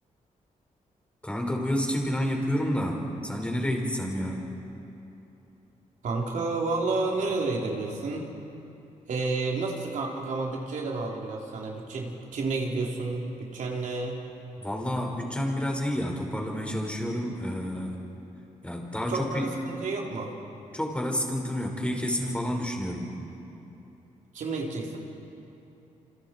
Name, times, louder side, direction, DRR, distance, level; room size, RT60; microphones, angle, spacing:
voice 1, 1.2-4.5 14.6-18.0 18.6-19.4 20.7-23.1, equal, 10° left, 0 dB, 5.1 m, -29 dB
voice 2, 6.0-8.3 9.1-14.2 19.1-20.3 24.3-25.0, right 3 dB, 75° right, -1 dB, 3.6 m, -30 dB
28.0 x 27.0 x 4.5 m, 2.9 s
cardioid pair, 75°, 13 cm